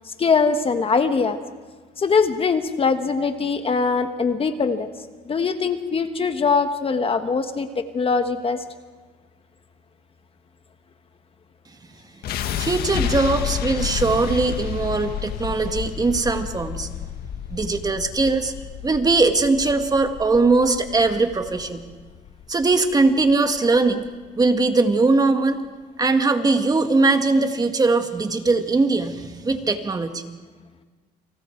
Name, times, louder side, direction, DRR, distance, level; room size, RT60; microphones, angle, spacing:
voice 1, 0.2-1.4 2.0-4.9 5.3-8.6, left 5 dB, 35° left, 8 dB, 1.5 m, -22 dB
sound 1, 12.2-24.3, left 9 dB, 65° left, 1.7 m, -31 dB
voice 2, 12.6-16.9 17.5-18.5 18.8-21.8 22.5-24.1 24.4-25.6 26.0-30.2, right 3 dB, 20° right, 6 dB, 1.9 m, -20 dB
29.5 x 27.5 x 4.6 m, 1.4 s
cardioid pair, 110°, 17 cm